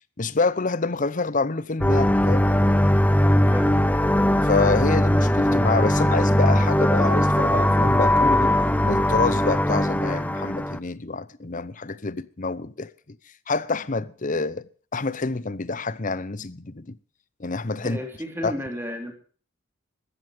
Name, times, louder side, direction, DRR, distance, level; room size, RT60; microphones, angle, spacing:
voice 1, 0.2-2.5 4.4-8.5 8.8-12.9 13.5-14.7 14.9-17.0 17.4-18.0 18.4-18.5, left 3 dB, 40° left, 0.8 m, -27 dB
sound 1, 1.8-10.8, left 1 dB, 5° left, 0.6 m, -20 dB
voice 2, 3.3-3.7 17.8-19.1, equal, 10° right, 3.3 m, -33 dB
15.5 x 13.0 x 5.1 m
head